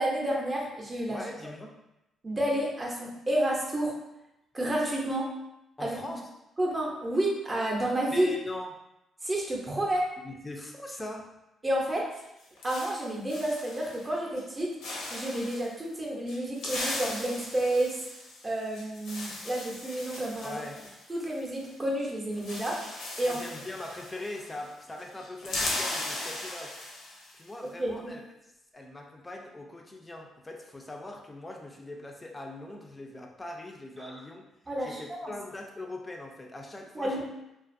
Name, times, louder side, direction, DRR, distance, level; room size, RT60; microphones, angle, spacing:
voice 1, 0.0-1.2 2.2-3.9 4.5-5.3 5.8-6.0 6.6-8.3 9.2-10.1 11.6-12.1 12.6-14.8 15.1-18.0 18.4-20.6 21.1-23.4 27.8-28.1 34.0-34.1 34.7-35.3 36.9-37.2, right 1 dB, 25° right, -2 dB, 0.7 m, -30 dB
voice 2, 1.1-1.8 5.8-6.2 8.1-8.7 10.2-11.3 20.4-20.8 23.2-26.8 27.3-28.2 28.7-34.5 34.8-37.2, left 2 dB, 20° left, 1 dB, 0.4 m, -41 dB
sound 1, 12.1-14.1 14.4-14.6 14.8-15.7 16.3-21.7 22.0-22.1 22.3-24.7 25.0-27.4, left 2 dB, 75° left, 0.7 m, -38 dB
2.4 x 2.4 x 2.6 m, 0.91 s
cardioid pair, 90°, 0 cm